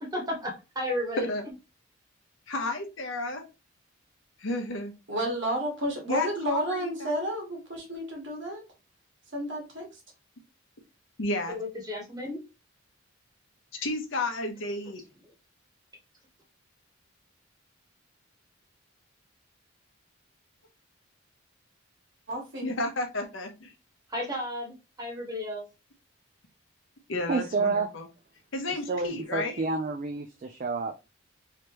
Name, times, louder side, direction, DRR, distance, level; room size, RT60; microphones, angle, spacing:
voice 1, 0.0-1.3 11.5-12.4 24.1-25.7 28.9-29.0, left 1 dB, 20° right, 1.2 m, -33 dB
voice 2, 2.5-3.4 4.4-4.9 6.1-7.1 11.2-11.6 13.7-15.0 22.6-23.7 27.1-28.0 28.5-29.6, left 2 dB, 65° left, 0.8 m, -32 dB
voice 3, 5.1-8.7 9.3-10.0 22.3-22.7, equal, 60° right, 1.5 m, -31 dB
voice 4, 27.3-27.9 28.9-30.9, right 4 dB, 40° right, 0.3 m, -29 dB
3.3 x 2.9 x 2.9 m
head